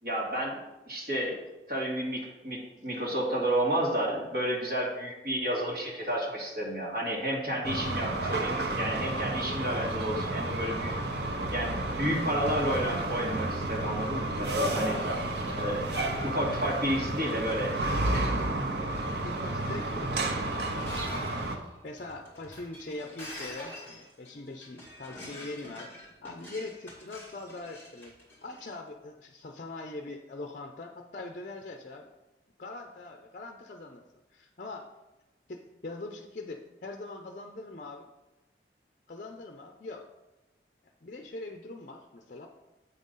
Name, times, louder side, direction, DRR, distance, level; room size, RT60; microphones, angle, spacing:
voice 1, 0.0-1.4 1.7-10.9 11.5-15.0 15.6-15.9 16.3-17.8 18.1-18.3, equal, 55° right, -5 dB, 2.3 m, -31 dB
sound 1, 7.6-21.6, right 2 dB, 70° right, 0.8 m, -31 dB
voice 2, 14.8-15.2 15.9-16.1 16.6-16.7 18.4-21.4 21.8-28.1 28.4-32.1 32.6-34.0 34.3-34.9 35.5-38.0 39.1-40.0 41.0-42.5, left 2 dB, 45° left, 3 dB, 0.5 m, -42 dB
Shatter, 20.7-28.7, left 1 dB, 15° left, 2.3 m, -45 dB
8.0 x 4.0 x 5.5 m, 1.0 s
head